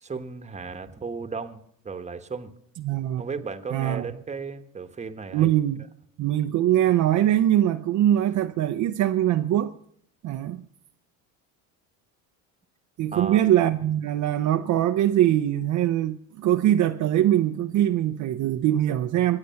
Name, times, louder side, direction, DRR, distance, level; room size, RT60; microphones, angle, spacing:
voice 1, 0.0-2.5 3.2-5.5 13.1-13.4, right 4 dB, 15° right, 1.2 m, -35 dB
voice 2, 2.8-3.2 3.7-4.0 5.3-5.8 6.2-9.7 10.2-10.7 13.0-19.4, right 12 dB, 50° right, 0.7 m, -22 dB
23.0 x 8.3 x 5.7 m
supercardioid pair, 90°, 39 cm